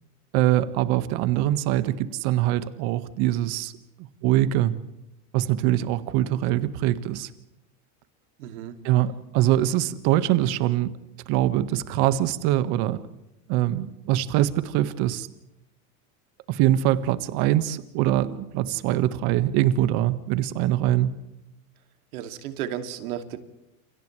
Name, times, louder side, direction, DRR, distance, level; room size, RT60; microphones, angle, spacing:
voice 1, 0.3-3.7 4.2-4.7 5.3-7.3 8.8-10.9 11.3-13.0 13.5-15.3 16.5-21.2, right 13 dB, 60° right, 11 dB, 1.7 m, -23 dB
voice 2, 8.4-8.8 22.1-23.4, right 10 dB, 85° right, 7 dB, 2.7 m, -33 dB
30.0 x 28.5 x 3.3 m, 0.91 s
supercardioid pair, 130°, 42 cm